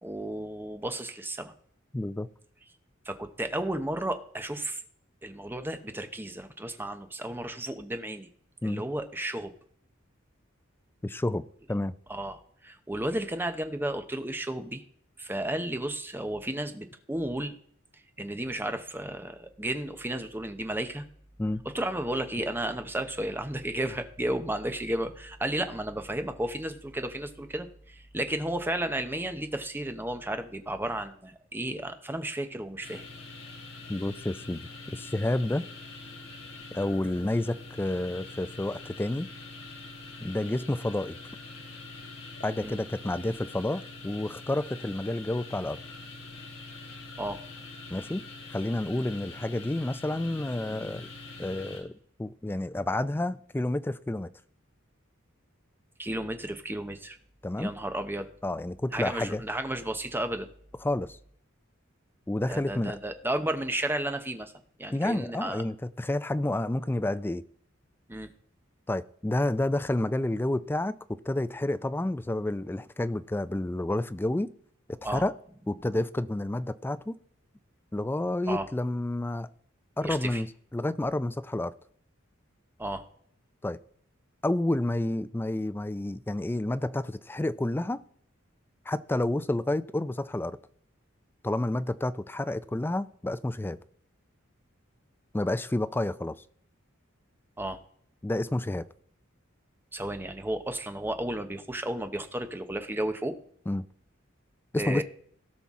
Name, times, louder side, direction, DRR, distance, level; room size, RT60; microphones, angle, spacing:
voice 1, 0.0-1.5 3.0-4.8 5.2-8.3 8.6-9.5 12.1-14.8 15.2-17.5 18.2-21.0 21.6-33.1 42.6-42.8 47.2-47.4 56.0-57.2 57.6-58.3 58.9-60.5 62.5-64.5 64.8-65.6 68.1-68.3 75.0-75.2 78.5-78.7 80.0-80.4 82.8-83.0 97.6-97.8 99.9-103.4 104.8-105.0, right 1 dB, 10° right, 8 dB, 0.8 m, -33 dB
voice 2, 1.9-2.3 8.6-8.8 11.0-11.4 11.7-11.9 21.4-21.6 33.9-35.7 36.7-39.3 40.2-41.1 42.4-45.8 47.9-48.2 48.5-51.1 51.4-51.9 52.2-54.3 57.4-57.7 58.4-59.4 60.8-61.2 62.3-63.0 64.9-67.4 68.9-71.0 71.3-74.5 75.1-75.3 75.7-77.2 77.9-79.5 80.0-80.5 80.7-81.7 83.6-83.8 84.4-88.0 88.9-90.6 91.4-93.8 95.3-96.3 98.2-98.9 103.7-103.8 104.7-105.0, left 1 dB, 10° left, 13 dB, 0.3 m, -29 dB
sound 1, 32.8-51.8, left 3 dB, 85° left, 3.3 m, -44 dB
17.0 x 5.8 x 3.6 m, 0.62 s
head